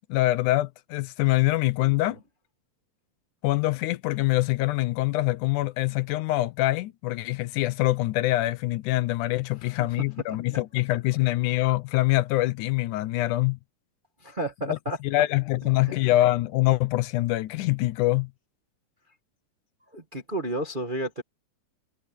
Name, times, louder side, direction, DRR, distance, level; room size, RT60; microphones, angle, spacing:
voice 1, 0.1-2.2 3.4-13.6 14.7-14.8 15.0-18.3, left 17 dB, 90° left, 2.3 m, -24 dB
voice 2, 14.2-15.0 19.9-21.2, right 1 dB, 30° right, 0.9 m, -31 dB
omnidirectional pair, 3.5 m